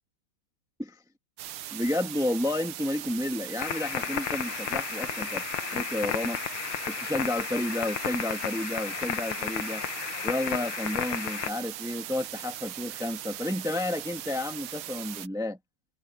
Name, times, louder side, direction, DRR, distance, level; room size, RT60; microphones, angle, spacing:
sound 1, 1.4-15.3, right 13 dB, 85° right, 1.7 m, -40 dB
voice 1, 1.7-5.4 5.7-6.4 6.9-9.8 10.2-15.6, left 1 dB, ahead, 1.4 m, -31 dB
sound 2, 3.6-11.5, left 11 dB, 80° left, 1.7 m, -33 dB
omnidirectional pair, 2.4 m